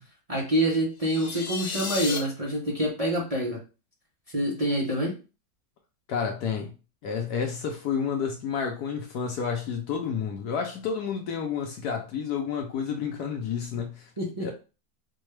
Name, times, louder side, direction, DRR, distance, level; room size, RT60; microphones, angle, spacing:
voice 1, 0.3-3.6 4.3-5.1 14.2-14.5, right 1 dB, 40° right, 0.5 m, -26 dB
sound 1, 1.0-2.2, left 4 dB, 55° left, 1.3 m, -33 dB
voice 2, 6.1-6.7 7.0-14.1 14.4-14.5, left 6 dB, 70° left, 1.1 m, -30 dB
4.3 x 2.2 x 3.2 m
omnidirectional pair, 1.9 m